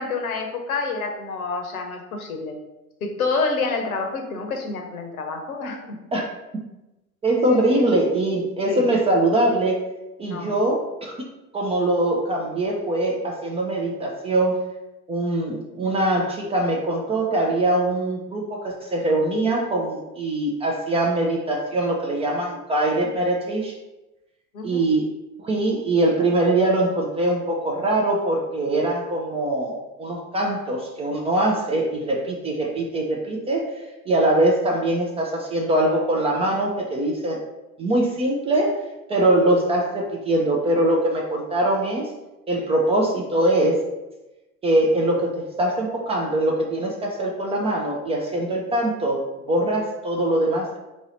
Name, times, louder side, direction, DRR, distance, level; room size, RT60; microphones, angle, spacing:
voice 1, 0.0-2.6 3.0-6.0 7.4-7.9 8.6-8.9 10.2-10.6 24.5-24.9, left 4 dB, 75° left, 4 dB, 0.8 m, -28 dB
voice 2, 7.2-9.8 10.2-11.1 11.5-14.6 15.1-23.7 24.6-25.1 25.4-33.7 34.1-37.4 37.8-38.8 39.1-42.1 42.5-43.8 44.6-50.8, right 1 dB, 15° right, -1 dB, 0.3 m, -22 dB
2.9 x 2.7 x 4.2 m, 1.0 s
figure-of-eight pair, 75°, 43 cm